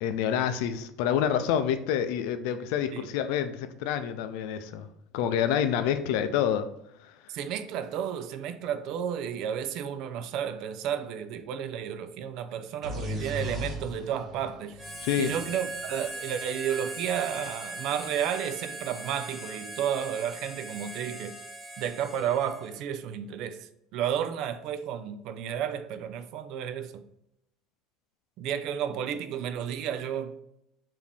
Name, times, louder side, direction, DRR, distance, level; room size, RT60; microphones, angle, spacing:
voice 1, 0.0-4.9 5.1-6.7 7.0-7.1 15.0-15.4, left 9 dB, 70° left, 0.4 m, -27 dB
voice 2, 7.3-14.8 15.2-21.3 21.8-23.7 23.9-27.0 28.4-30.4, right 9 dB, 50° right, 0.4 m, -32 dB
sound 1, 12.8-16.5, left 1 dB, 25° right, 1.1 m, -38 dB
Harmonica, 14.8-22.8, right 1 dB, 5° right, 0.7 m, -40 dB
5.0 x 2.7 x 3.4 m
cardioid pair, 160°, 0 cm